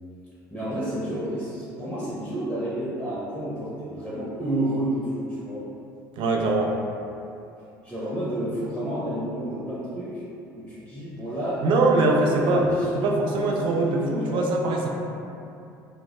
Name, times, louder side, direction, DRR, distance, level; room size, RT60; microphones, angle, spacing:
voice 1, 0.5-5.7 7.8-10.2 10.5-11.6 12.0-14.4, right 1 dB, 10° left, -9 dB, 0.6 m, -30 dB
voice 2, 6.2-6.7 11.6-12.7 13.0-14.9, right 2 dB, 55° right, 0 dB, 0.4 m, -22 dB
2.1 x 2.0 x 2.9 m, 2.7 s
hypercardioid pair, 65°, 10 cm